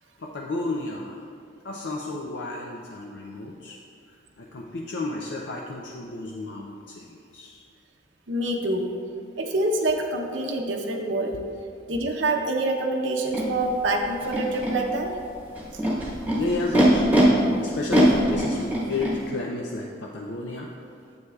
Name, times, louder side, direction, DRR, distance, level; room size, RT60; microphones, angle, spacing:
voice 1, 0.2-1.3 1.6-3.8 4.1-7.7 16.3-17.3 17.6-20.7, left 2 dB, 70° left, -1 dB, 0.5 m, -32 dB
voice 2, 8.3-8.9 9.4-11.3 11.9-15.1, right 2 dB, 90° right, 2 dB, 0.8 m, -26 dB
Animal, 13.3-13.4 14.2-14.7 15.6-17.2 17.9-19.1, equal, 10° right, 1.1 m, -23 dB
9.4 x 8.0 x 2.3 m, 2.4 s
head